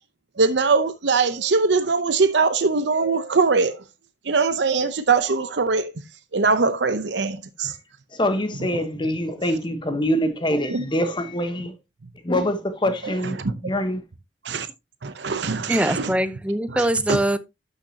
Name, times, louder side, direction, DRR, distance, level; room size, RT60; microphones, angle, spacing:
voice 1, 0.4-3.8 4.2-5.9 6.3-7.8 8.7-8.8 10.7-10.8 13.2-13.5 14.4-14.7 15.0-16.1 16.7-17.2, right 4 dB, 70° right, 0.7 m, -22 dB
voice 2, 8.1-11.7 12.2-13.4 13.6-14.0, equal, 25° left, 1.2 m, -24 dB
voice 3, 15.7-17.4, right 1 dB, 5° right, 0.6 m, -22 dB
12.5 x 6.4 x 2.8 m
head